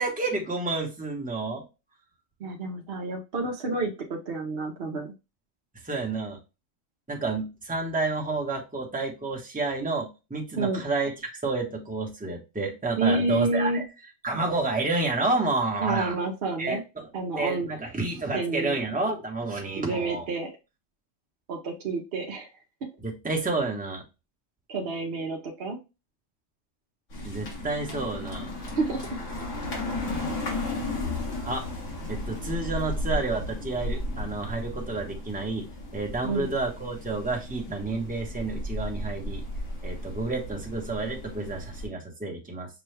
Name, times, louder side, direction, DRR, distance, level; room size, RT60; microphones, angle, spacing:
voice 1, 0.0-1.6 5.8-6.4 7.1-11.1 11.4-13.8 14.2-16.2 16.6-17.1 17.3-20.3 23.0-24.0 27.2-28.5 31.5-31.7 32.1-35.7 35.9-39.4 39.8-42.7, right 3 dB, 10° right, 1 dB, 0.8 m, -30 dB
voice 2, 2.4-5.1 10.6-10.8 13.0-13.8 15.8-16.8 17.1-17.7 18.3-18.8 19.7-20.5 21.5-22.5 24.7-25.8 28.7-29.0 36.2-36.5, right 3 dB, 55° right, 2 dB, 0.8 m, -29 dB
sound 1, 27.1-41.9, left 1 dB, 75° left, 1.8 m, -34 dB
6.0 x 2.2 x 3.2 m, 0.27 s
omnidirectional pair, 1.4 m